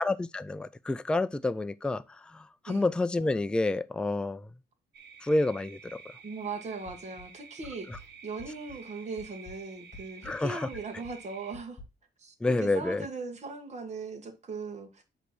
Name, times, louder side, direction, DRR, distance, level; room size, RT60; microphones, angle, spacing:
voice 1, 0.0-4.5 5.2-6.0 7.9-8.0 10.2-10.7 12.4-13.0, left 2 dB, 5° left, 0.4 m, -29 dB
sound 1, 4.9-11.6, right 6 dB, 70° right, 1.5 m, -50 dB
voice 2, 6.2-11.8 12.2-15.0, right 4 dB, 40° right, 1.6 m, -39 dB
sound 2, 6.9-8.9 9.2-11.8, left 2 dB, 30° left, 2.0 m, -51 dB
8.1 x 3.3 x 6.0 m
cardioid pair, 125°, 18 cm